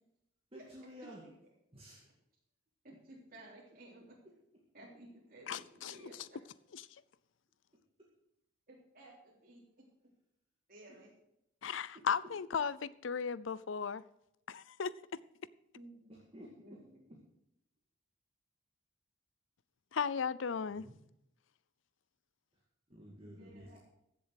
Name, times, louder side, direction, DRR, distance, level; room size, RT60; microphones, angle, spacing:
voice 1, 0.5-1.2 1.7-2.1 16.3-16.5 20.7-20.9 22.9-23.8, equal, 30° right, 2.2 m, -52 dB
voice 2, 2.8-4.1 4.7-6.1 8.7-9.6 10.7-11.1 15.7-16.1 16.6-17.1 23.2-23.8, right 1 dB, 45° right, 3.4 m, -55 dB
voice 3, 5.5-6.0 6.7-6.8 11.6-14.0 14.5-14.9 19.9-20.8, left 6 dB, 75° left, 0.5 m, -36 dB
15.5 x 7.1 x 6.4 m
head